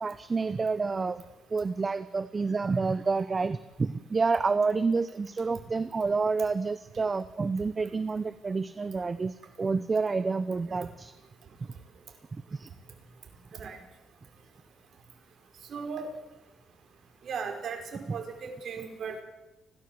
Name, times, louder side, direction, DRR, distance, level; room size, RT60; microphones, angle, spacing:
voice 1, 0.0-1.2 1.5-11.1 12.5-12.7, right 4 dB, 30° right, 14 dB, 0.9 m, -29 dB
voice 2, 15.7-16.1 17.2-19.2, right 5 dB, 60° right, 4 dB, 5.2 m, -37 dB
30.0 x 13.0 x 7.9 m, 0.99 s
cardioid pair, 90°, 0 cm